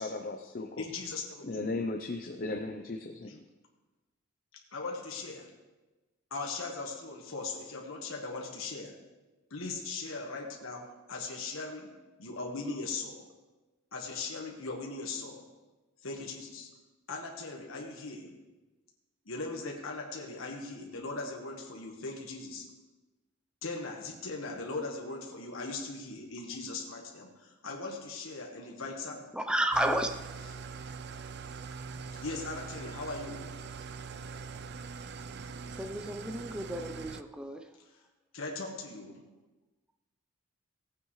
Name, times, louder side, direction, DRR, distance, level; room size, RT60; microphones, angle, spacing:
voice 1, 0.0-0.8 1.4-3.4, left 2 dB, 45° left, 4 dB, 0.6 m, -36 dB
voice 2, 0.8-1.7 3.3-3.4 4.7-5.5 6.3-8.9 9.5-13.3 13.9-15.4 16.0-16.7 17.1-18.3 19.2-22.7 23.6-29.3 32.2-33.5 38.3-39.2, left 3 dB, 80° left, 0 dB, 1.5 m, -39 dB
voice 3, 29.3-30.1 35.7-37.7, right 1 dB, 5° right, 6 dB, 0.6 m, -32 dB
Engine starting / Idling, 29.7-37.2, right 5 dB, 55° right, 0.4 m, -43 dB
17.5 x 9.3 x 3.2 m, 1.2 s
head